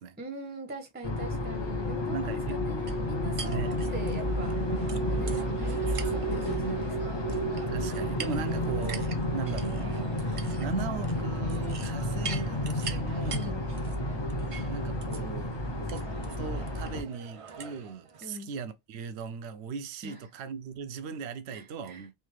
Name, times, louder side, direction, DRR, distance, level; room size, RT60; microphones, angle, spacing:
voice 1, 0.2-4.6 5.2-7.4 13.3-13.6 18.2-18.5 20.0-20.2 21.5-22.0, right 1 dB, 10° right, 0.7 m, -42 dB
sound 1, 1.0-17.0, equal, 30° left, 0.5 m, -31 dB
voice 2, 2.1-2.6 3.4-3.7 7.4-13.4 14.7-15.6 15.9-16.1 16.4-22.1, right 6 dB, 75° right, 0.8 m, -38 dB
sound 2, 2.9-18.3, right 5 dB, 45° right, 0.4 m, -44 dB
3.3 x 2.7 x 3.1 m
omnidirectional pair, 1.2 m